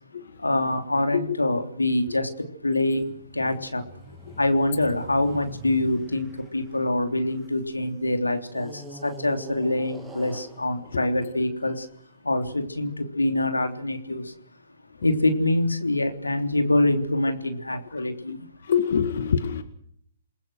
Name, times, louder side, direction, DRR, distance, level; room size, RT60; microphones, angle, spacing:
voice 1, 0.4-2.3 2.6-3.8 4.4-6.3 6.5-8.7 9.0-11.8 12.2-14.2 15.0-18.4, left 1 dB, 85° left, 3.3 m, -25 dB
sound 1, 3.0-7.7 8.5-11.9, right 2 dB, 5° right, 2.5 m, -45 dB
voice 2, 18.7-19.6, left 7 dB, 60° left, 1.9 m, -24 dB
28.5 x 20.5 x 6.3 m
figure-of-eight pair, 125°, 0 cm